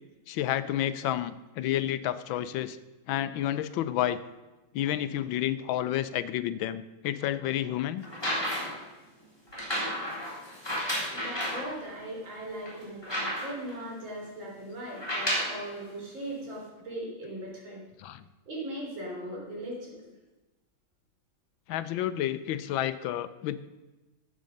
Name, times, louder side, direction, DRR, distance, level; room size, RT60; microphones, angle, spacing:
voice 1, 0.3-2.8 3.1-4.2 4.7-8.0 18.0-18.2 21.7-23.6, left 12 dB, 80° left, 14 dB, 1.4 m, -30 dB
sound 1, 8.0-8.8 9.5-11.7 12.2-12.3 12.6-13.7 14.9-15.6 16.5-16.6, equal, 10° left, 3.4 m, -32 dB
voice 2, 10.9-17.8 18.5-20.1, right 1 dB, 75° right, -2 dB, 4.1 m, -39 dB
13.0 x 8.5 x 5.2 m, 1.1 s
omnidirectional pair, 2.2 m